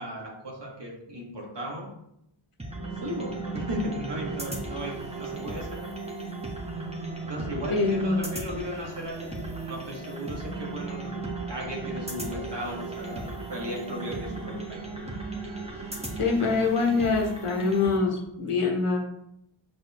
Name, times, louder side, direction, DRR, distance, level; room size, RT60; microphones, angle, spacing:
voice 1, 0.0-1.9 2.8-5.9 7.2-9.4 9.7-11.2 11.5-14.8, equal, 55° right, -2 dB, 2.0 m, -36 dB
sound 1, 2.6-18.0, right 3 dB, 10° right, 1.5 m, -36 dB
voice 2, 7.7-8.2 16.2-19.0, left 4 dB, 85° left, 1 dB, 1.4 m, -24 dB
6.4 x 5.4 x 3.1 m, 0.79 s
cardioid pair, 40°, 50 cm